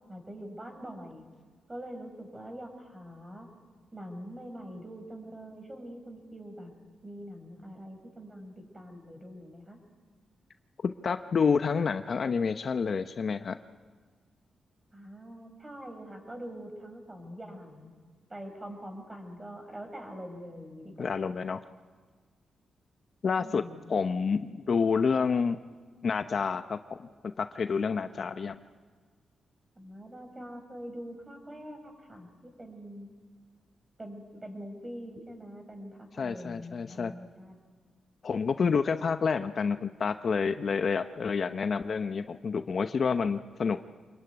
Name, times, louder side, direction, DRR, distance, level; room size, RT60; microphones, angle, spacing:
voice 1, 0.1-1.2 1.7-3.5 3.9-6.7 7.0-9.8 14.9-17.9 18.3-21.1 23.4-23.8 29.8-33.1 34.0-37.6, equal, 20° right, 5 dB, 5.8 m, -44 dB
voice 2, 10.8-13.6 21.0-21.6 23.2-23.6 23.9-25.6 26.0-27.1 27.4-28.6 36.2-37.1 38.2-43.8, left 5 dB, 50° left, 9 dB, 0.9 m, -28 dB
27.0 x 21.5 x 9.6 m, 1.5 s
cardioid pair, 100°, 0 cm